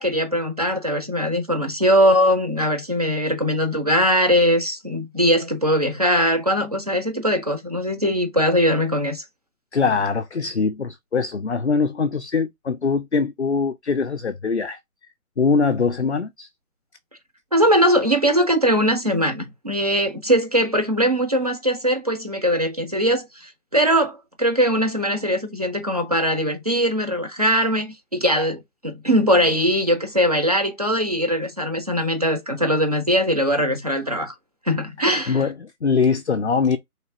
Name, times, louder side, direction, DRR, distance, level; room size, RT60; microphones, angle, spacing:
voice 1, 0.0-9.2 17.5-34.3 34.7-35.4, equal, 25° right, 0.8 m, -21 dB
voice 2, 9.7-14.8 15.4-16.5 35.0-36.8, left 5 dB, 50° left, 0.5 m, -22 dB
3.2 x 3.0 x 2.7 m
figure-of-eight pair, 170°, 44 cm